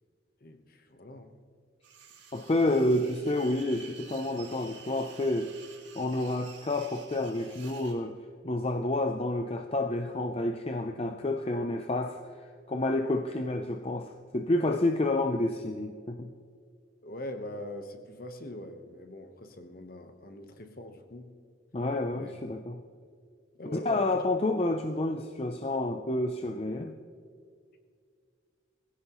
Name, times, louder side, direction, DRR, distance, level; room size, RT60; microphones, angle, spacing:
voice 1, 0.4-1.3 17.0-21.4 22.1-22.3 23.6-24.2, left 1 dB, 50° left, 7 dB, 1.1 m, -42 dB
sound 1, 1.8-8.0, right 6 dB, 70° right, 2.9 m, -51 dB
voice 2, 2.3-5.5 6.0-8.2 8.4-12.2 12.7-16.3 21.7-22.8 23.7-27.0, left 2 dB, 30° left, 5 dB, 0.5 m, -29 dB
21.0 x 16.0 x 3.1 m, 2.2 s
head